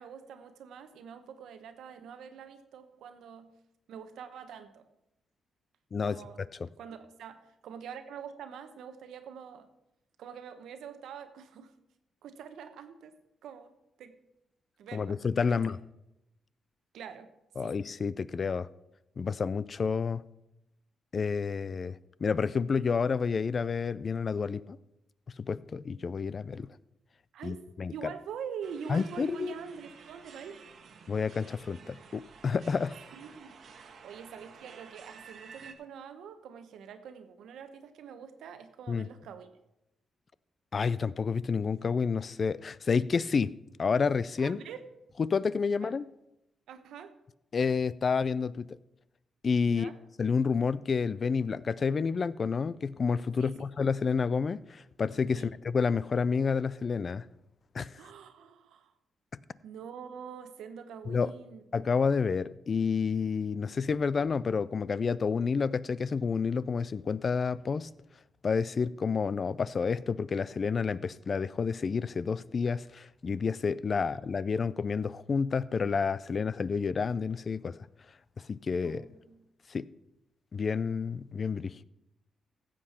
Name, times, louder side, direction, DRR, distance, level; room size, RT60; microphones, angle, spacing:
voice 1, 0.0-3.5 3.9-4.9 6.0-6.4 6.8-9.7 10.2-11.7 12.2-13.2 13.4-13.7 14.0-14.2 14.8-15.2 15.5-15.6 16.9-17.3 17.6-17.8 27.3-27.6 27.9-30.6 33.1-39.5 44.4-44.8 45.7-45.9 46.7-47.1 49.6-50.0 53.4-53.6 55.3-55.5 58.0-58.9 59.6-61.6 78.8-79.4, right 7 dB, 90° right, 1.0 m, -45 dB
voice 2, 14.9-15.8 17.6-18.7 19.2-20.2 21.1-24.8 25.5-26.7 27.4-27.9 28.9-29.5 31.1-33.0 38.9-39.1 40.7-43.5 43.8-44.6 45.2-46.0 47.5-48.7 49.4-49.9 50.2-57.2 57.7-57.9 61.1-61.3 61.7-67.9 68.4-77.8 78.5-79.0 79.7-79.8 80.5-81.8, left 5 dB, 40° left, 0.4 m, -29 dB
sound 1, 28.6-35.7, right 5 dB, 60° right, 1.3 m, -52 dB
15.0 x 7.7 x 4.3 m
cardioid pair, 110°, 0 cm